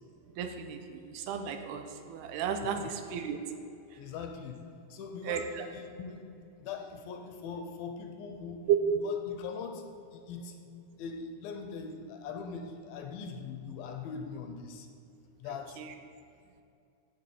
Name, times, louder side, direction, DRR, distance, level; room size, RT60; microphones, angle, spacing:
voice 1, 0.4-3.4 5.3-5.6 8.7-8.8, right 9 dB, 85° right, 6 dB, 2.7 m, -33 dB
voice 2, 4.0-4.6 4.9-6.2 6.6-8.7 8.9-9.8 10.1-10.5 11.0-14.9 15.4-15.8, left 5 dB, 75° left, 5 dB, 2.4 m, -41 dB
8.0 x 8.0 x 8.5 m, 2.6 s
omnidirectional pair, 4.6 m